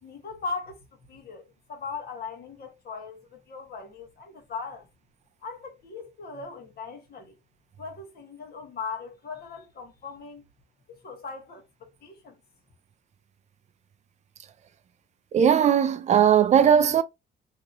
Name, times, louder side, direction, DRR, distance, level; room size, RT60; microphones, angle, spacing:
voice 1, 0.0-0.8 1.1-4.9 5.4-7.4 7.8-10.4 10.9-12.4, left 4 dB, 55° left, 1.3 m, -39 dB
voice 2, 15.3-17.0, right 8 dB, 35° right, 0.4 m, -18 dB
2.9 x 2.8 x 2.5 m
cardioid pair, 145°, 19 cm